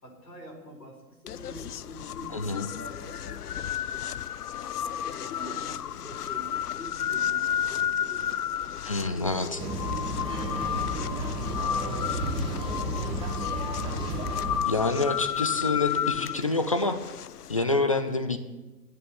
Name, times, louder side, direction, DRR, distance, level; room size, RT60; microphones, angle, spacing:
voice 1, 0.0-4.3 5.0-8.3 9.0-13.7, equal, 90° left, 1 dB, 4.6 m, -46 dB
sound 1, 1.3-17.6, left 10 dB, 70° left, 0.6 m, -32 dB
voice 2, 2.3-2.7 8.8-9.6 14.6-17.0 17.5-18.4, left 3 dB, 25° left, 9 dB, 0.4 m, -27 dB
sound 2, 9.6-14.6, right 1 dB, 10° right, 1.2 m, -32 dB
11.0 x 9.6 x 8.6 m, 1.1 s
figure-of-eight pair, 130°, 48 cm